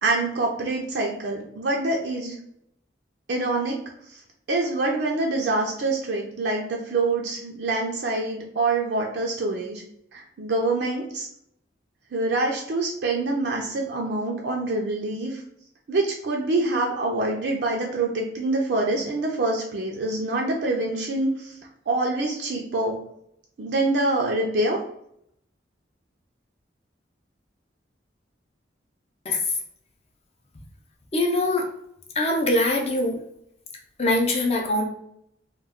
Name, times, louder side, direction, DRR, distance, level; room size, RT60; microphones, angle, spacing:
voice 1, 0.0-2.4 3.3-3.8 4.1-4.2 4.5-9.8 10.1-11.3 12.1-15.4 15.9-21.5 21.9-23.0 23.6-24.8, right 2 dB, 60° right, -1 dB, 0.4 m, -25 dB
voice 2, 31.1-31.7 32.2-33.2 34.0-34.9, left 1 dB, 35° left, 2 dB, 0.5 m, -22 dB
2.2 x 2.2 x 3.4 m, 0.74 s
head